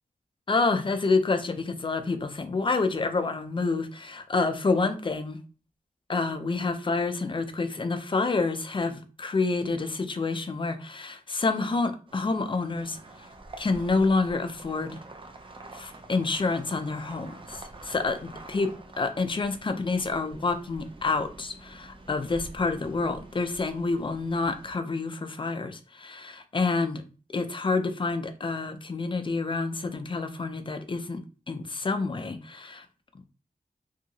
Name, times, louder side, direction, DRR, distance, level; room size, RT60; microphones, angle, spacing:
voice 1, 0.5-5.4 6.1-13.3 13.6-15.0 15.7-27.0 27.3-31.2 31.5-32.9, left 3 dB, 30° left, 8 dB, 0.4 m, -28 dB
sound 1, 12.1-24.7, right 2 dB, 35° right, 0.5 m, -47 dB
2.8 x 2.6 x 2.7 m, 0.37 s
wide cardioid pair, 105°, 16 cm